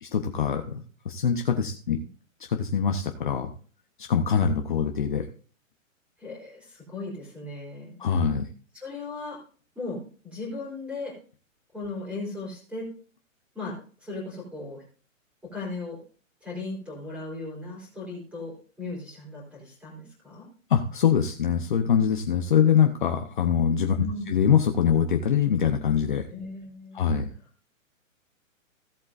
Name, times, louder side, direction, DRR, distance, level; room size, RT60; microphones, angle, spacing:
voice 1, 0.0-0.8 1.0-2.0 2.5-3.5 4.0-5.3 8.0-8.5 20.7-26.3 26.9-27.3, left 7 dB, 40° left, 5 dB, 0.8 m, -23 dB
voice 2, 6.2-8.0 8.7-9.4 9.8-11.2 11.7-12.9 13.5-14.8 15.4-16.0 16.4-20.5 24.0-24.4 26.3-27.1 27.3-27.5, left 3 dB, 5° right, -3 dB, 3.9 m, -37 dB
16.5 x 8.1 x 2.6 m, 0.41 s
hypercardioid pair, 175°, 40 cm